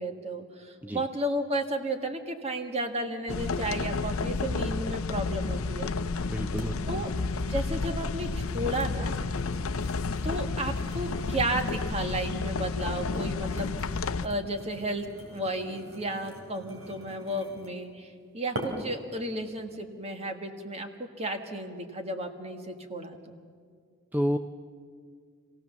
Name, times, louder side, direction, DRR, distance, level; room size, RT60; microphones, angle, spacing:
voice 1, 0.0-5.9 6.9-7.1 7.5-9.2 10.2-13.7 14.2-23.3, right 1 dB, 30° right, 5 dB, 1.7 m, -33 dB
sound 1, 3.3-14.3, left 4 dB, 85° left, 0.6 m, -31 dB
sound 2, 5.8-5.9 6.6-6.8 7.1-12.3 12.9-17.8 18.5-19.0 19.5-19.8, right 1 dB, 75° right, 3.0 m, -44 dB
voice 2, 6.2-7.1 24.1-24.4, equal, 10° right, 7 dB, 0.5 m, -30 dB
26.5 x 17.0 x 7.1 m, 2.1 s
head